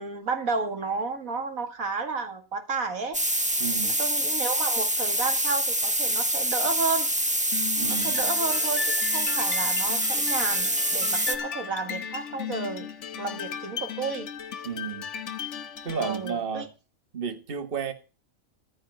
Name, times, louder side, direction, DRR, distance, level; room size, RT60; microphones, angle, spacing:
voice 1, 0.0-3.2 3.8-7.1 7.9-12.9 13.2-14.6 16.0-16.7, right 4 dB, 80° right, 2.4 m, -32 dB
sound 1, 3.1-11.4, right 1 dB, 5° right, 0.9 m, -26 dB
voice 2, 3.6-4.0 7.8-8.2 14.6-15.1 15.8-16.7 17.1-17.9, right 6 dB, 40° right, 1.6 m, -32 dB
sound 2, 7.5-16.4, left 8 dB, 60° left, 1.2 m, -36 dB
14.0 x 5.4 x 9.3 m
omnidirectional pair, 1.4 m